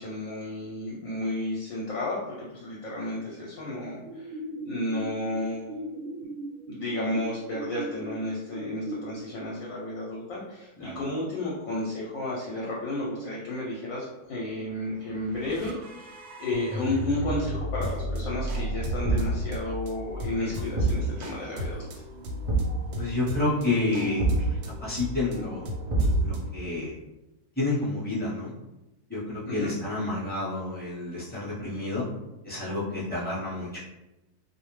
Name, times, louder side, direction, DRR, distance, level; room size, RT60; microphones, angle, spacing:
voice 1, 0.0-4.4 4.6-5.9 6.7-16.1 16.4-21.8 29.4-29.7, left 1 dB, 70° left, -4 dB, 0.9 m, -32 dB
sound 1, 4.0-9.0, right 1 dB, 65° right, 0.8 m, -39 dB
sound 2, 14.7-26.5, equal, 90° right, 1.1 m, -35 dB
Thump thud, 19.0-19.5 20.7-21.1 22.4-22.8 24.2-24.5 25.9-26.5, right 2 dB, 45° right, 0.4 m, -25 dB
voice 2, 23.0-25.6 26.2-26.9 27.6-28.6 29.1-32.0 32.4-33.8, left 2 dB, 10° left, -10 dB, 0.8 m, -29 dB
2.5 x 2.1 x 3.1 m, 0.96 s
omnidirectional pair, 1.6 m